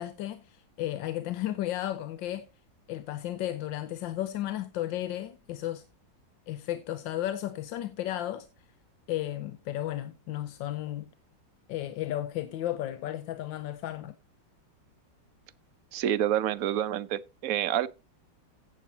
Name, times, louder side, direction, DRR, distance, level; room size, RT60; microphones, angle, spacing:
voice 1, 0.0-2.5 2.9-5.8 6.5-8.5 9.1-11.1 11.7-14.1, left 13 dB, 85° left, 1.4 m, -34 dB
voice 2, 15.9-17.9, right 11 dB, 65° right, 0.9 m, -28 dB
15.0 x 7.9 x 2.8 m
omnidirectional pair, 2.0 m